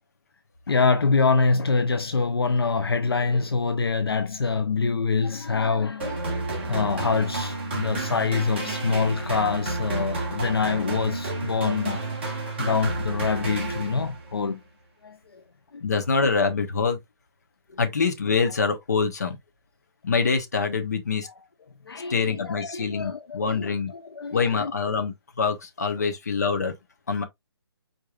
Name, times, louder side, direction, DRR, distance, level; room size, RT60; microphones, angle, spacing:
voice 1, 0.7-6.2 6.7-12.0 12.6-14.6 15.0-15.4 21.2-21.3 21.9-24.7, left 4 dB, 60° left, 0.7 m, -25 dB
sound 1, 6.0-14.3, right 2 dB, 25° right, 1.5 m, -30 dB
voice 2, 15.8-17.0 17.8-19.4 20.0-21.3 22.1-23.9 24.3-26.7 27.1-27.2, left 5 dB, 40° left, 1.1 m, -25 dB
5.1 x 4.4 x 2.4 m
hypercardioid pair, 180°, 14 cm